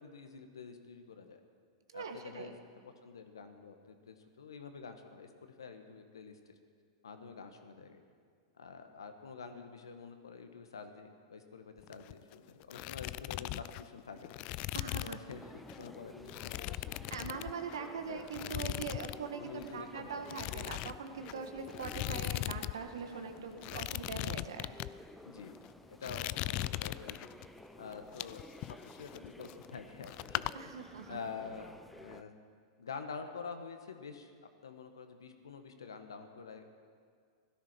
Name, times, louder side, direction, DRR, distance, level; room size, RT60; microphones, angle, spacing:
voice 1, 0.0-1.4 1.9-2.6 3.0-6.5 7.0-8.0 8.6-14.4 14.8-17.1 18.1-18.5 19.3-20.2 25.2-25.6 25.9-27.3 27.8-28.5 28.9-30.7 31.1-32.3 32.8-36.8, left 5 dB, 80° left, 7 dB, 1.5 m, -47 dB
voice 2, 1.9-2.5 14.7-15.2 17.1-24.8 30.5-31.2, right 5 dB, 75° right, 6 dB, 1.7 m, -42 dB
sound 1, 11.8-12.3 12.6-15.3 15.7-15.9 16.3-17.9 18.3-19.2 19.5-19.7 20.3-22.7 23.0-23.1 23.6-24.9 25.5-25.7 26.0-27.5 27.9-29.8 30.0-30.5, left 19 dB, 45° left, 0.4 m, -39 dB
sound 2, 15.3-32.2, left 1 dB, 5° left, 0.8 m, -54 dB
17.0 x 13.5 x 5.9 m, 2.1 s
hypercardioid pair, 100°, 2 cm